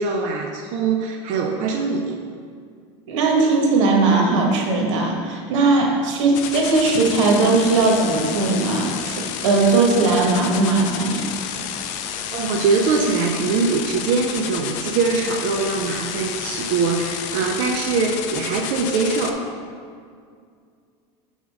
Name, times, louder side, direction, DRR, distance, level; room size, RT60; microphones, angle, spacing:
voice 1, 0.0-2.2 10.1-10.3 12.3-19.5, right 4 dB, 50° right, 1 dB, 0.6 m, -22 dB
voice 2, 3.1-11.2, right 3 dB, 85° right, 0 dB, 1.3 m, -19 dB
sound 1, 6.3-19.3, left 8 dB, 55° left, 0.5 m, -30 dB
7.1 x 3.6 x 4.8 m, 2.2 s
supercardioid pair, 145°, 15 cm